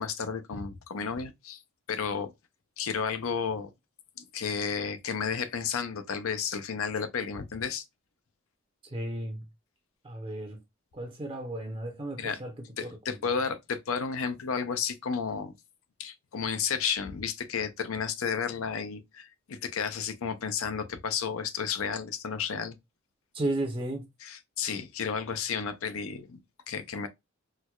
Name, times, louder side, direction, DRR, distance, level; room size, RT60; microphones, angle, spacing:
voice 1, 0.0-1.6 1.9-2.3 2.8-3.7 4.2-7.8 12.2-12.4 12.8-15.5 16.0-22.8 24.2-27.1, left 6 dB, 90° left, 0.5 m, -32 dB
voice 2, 8.8-9.4 10.0-10.6 10.9-12.5 13.1-13.2 23.3-24.1, right 1 dB, 25° right, 0.6 m, -34 dB
4.4 x 2.2 x 2.3 m
head